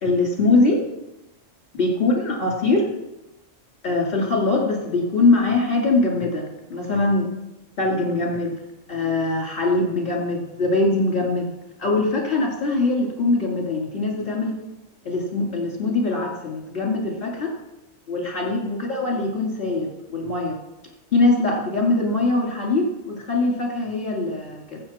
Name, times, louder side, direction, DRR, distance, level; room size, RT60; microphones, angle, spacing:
voice 1, 0.0-0.8 1.8-2.9 3.8-7.3 7.8-8.6 8.9-11.5 11.8-14.6 15.0-17.5 18.1-20.6 21.1-24.8, left 2 dB, 45° left, 0 dB, 2.7 m, -22 dB
15.0 x 8.2 x 4.3 m, 0.93 s
omnidirectional pair, 1.3 m